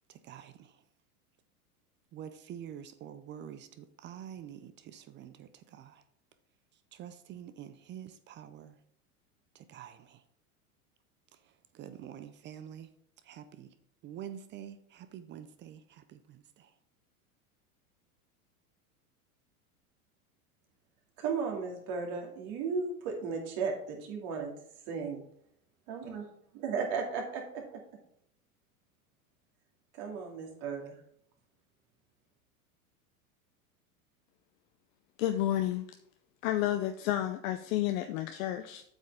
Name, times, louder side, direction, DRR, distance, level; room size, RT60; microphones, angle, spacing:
voice 1, 0.1-0.8 2.1-6.0 6.9-8.8 9.5-10.2 11.3-12.9 13.2-13.8 14.0-16.7, right 9 dB, 25° right, 0.4 m, -47 dB
voice 2, 21.2-24.5 24.9-25.2 25.9-26.3 26.5-27.8 30.0-31.0, right 5 dB, 55° right, 2.5 m, -35 dB
voice 3, 35.2-35.9 36.4-38.8, left 13 dB, 65° left, 0.7 m, -31 dB
8.0 x 6.4 x 3.5 m
hypercardioid pair, 105°, 45 cm